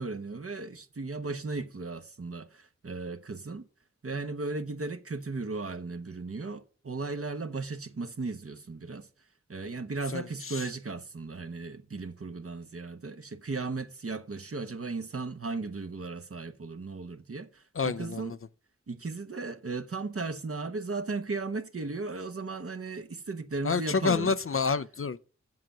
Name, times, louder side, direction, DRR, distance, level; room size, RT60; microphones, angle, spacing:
voice 1, 0.0-3.7 4.0-9.1 9.5-18.4 18.9-24.4, right 3 dB, 50° right, 1.0 m, -36 dB
voice 2, 10.1-10.7 17.7-18.4 23.6-25.2, left 5 dB, 50° left, 0.5 m, -29 dB
7.6 x 5.7 x 7.4 m
wide cardioid pair, 45°, 29 cm